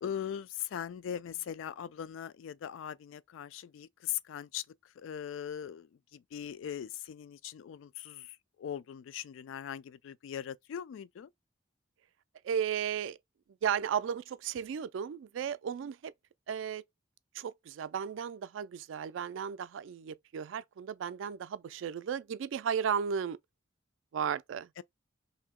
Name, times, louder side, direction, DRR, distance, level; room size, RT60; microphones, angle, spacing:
voice 1, 0.0-4.6 5.0-11.3 24.8-24.9, left 9 dB, 80° left, 0.3 m, -40 dB
voice 2, 12.4-13.2 13.6-16.1 16.5-16.8 17.4-23.4 24.1-24.7, right 7 dB, 75° right, 0.3 m, -34 dB
2.8 x 2.7 x 3.6 m
head